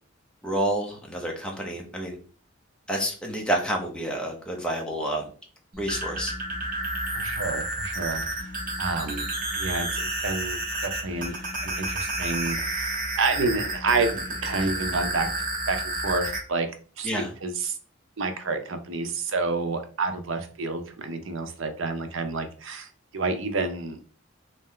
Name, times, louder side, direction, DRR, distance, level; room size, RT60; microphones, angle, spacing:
voice 1, 0.4-2.2 2.9-5.3 5.8-6.3 14.6-14.7 17.0-17.3, right 1 dB, 5° left, 0 dB, 0.7 m, -29 dB
sound 1, 5.7-16.4, right 2 dB, 40° right, 1.0 m, -31 dB
voice 2, 7.1-8.3 8.8-9.2 9.6-11.3 11.6-14.1 14.4-15.3 15.7-16.7 17.0-17.1 17.4-17.8 18.2-22.9 23.1-24.0, right 3 dB, 70° right, 7 dB, 0.6 m, -29 dB
3.1 x 2.7 x 3.7 m, 0.41 s
head